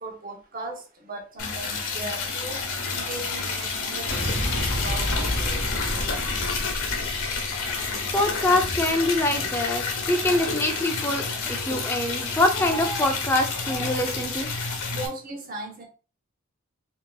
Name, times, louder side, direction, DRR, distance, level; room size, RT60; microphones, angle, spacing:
voice 1, 0.0-2.6 2.9-6.0 14.9-15.8, right 2 dB, 40° right, 1.0 m, -38 dB
Liquid, 1.4-15.1, left 4 dB, 75° left, 1.2 m, -29 dB
Explosion, 4.1-8.4, equal, 50° left, 1.1 m, -30 dB
voice 2, 7.7-14.5, left 1 dB, 10° left, 0.5 m, -25 dB
4.8 x 2.9 x 2.3 m
head